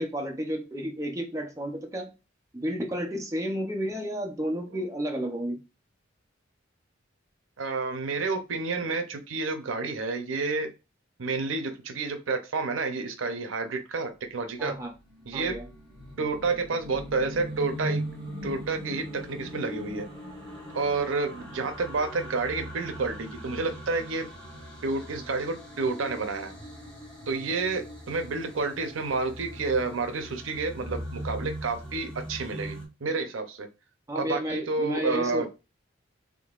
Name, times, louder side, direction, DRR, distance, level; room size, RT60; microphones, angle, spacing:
voice 1, 0.0-2.1 2.5-5.6 14.6-14.9 15.3-15.7 34.1-35.5, equal, 15° right, 0.6 m, -31 dB
voice 2, 7.6-10.7 11.2-14.7 15.3-15.5 16.2-18.0 18.4-20.1 20.7-24.3 24.8-26.5 27.3-33.7 34.1-35.5, right 3 dB, 85° right, 0.7 m, -30 dB
sound 1, 15.0-32.8, right 1 dB, 5° left, 1.6 m, -40 dB
3.7 x 3.4 x 2.4 m
head